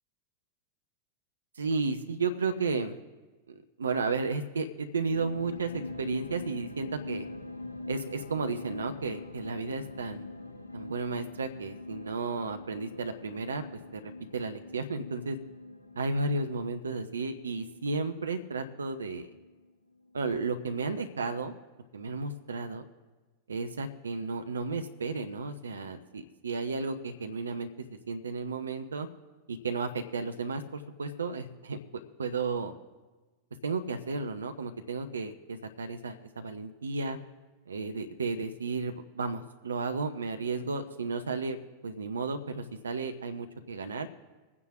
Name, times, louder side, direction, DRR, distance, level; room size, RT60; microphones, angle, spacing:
voice 1, 1.6-3.0 3.5-7.3 7.9-10.3 10.7-13.6 13.9-15.4 16.0-19.3 20.1-21.5 21.9-22.9 23.5-29.1 29.5-32.7 33.6-37.2 37.7-44.1, right 4 dB, 70° right, 8 dB, 0.7 m, -33 dB
sound 1, 5.1-19.7 20.1-20.2, left 2 dB, 80° left, 0.8 m, -43 dB
25.0 x 9.7 x 2.5 m, 1.2 s
figure-of-eight pair, 90°, 0 cm